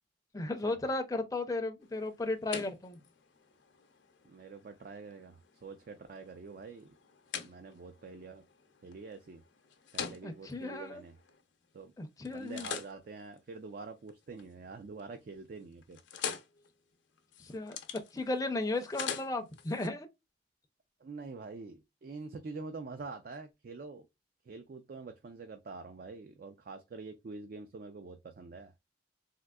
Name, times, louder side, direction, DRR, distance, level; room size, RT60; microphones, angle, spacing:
voice 1, 0.3-3.0 10.2-11.0 12.0-12.7 17.4-17.8 18.1-20.1, left 2 dB, 20° left, 0.4 m, -35 dB
sound 1, 1.8-11.8 12.3-14.5 14.9-15.3 15.6-19.9, left 7 dB, 80° left, 0.6 m, -45 dB
voice 2, 4.2-6.9 7.4-8.4 8.8-9.4 9.9-11.1 11.7-11.9 12.3-16.0 21.0-24.1 24.4-28.7, right 4 dB, 50° right, 0.3 m, -46 dB
3.6 x 2.6 x 2.2 m
head